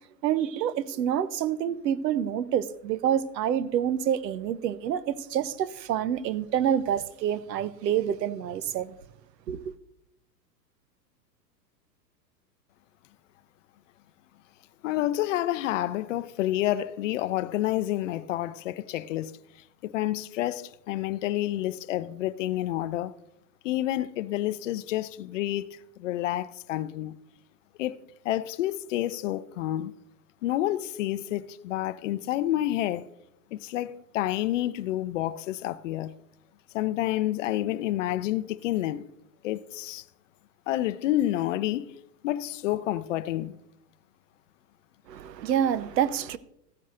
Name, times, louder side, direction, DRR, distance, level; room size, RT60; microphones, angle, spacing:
voice 1, 0.2-8.9 9.5-9.7 45.1-46.4, right 9 dB, 75° right, 0.7 m, -27 dB
voice 2, 14.8-19.4 19.8-23.2 23.6-27.2 27.8-29.9 30.4-33.1 33.5-36.1 36.7-39.1 39.4-40.0 40.7-41.9 42.2-43.6, left 14 dB, 50° left, 0.5 m, -29 dB
14.5 x 10.0 x 2.5 m
hypercardioid pair, 110°, 50 cm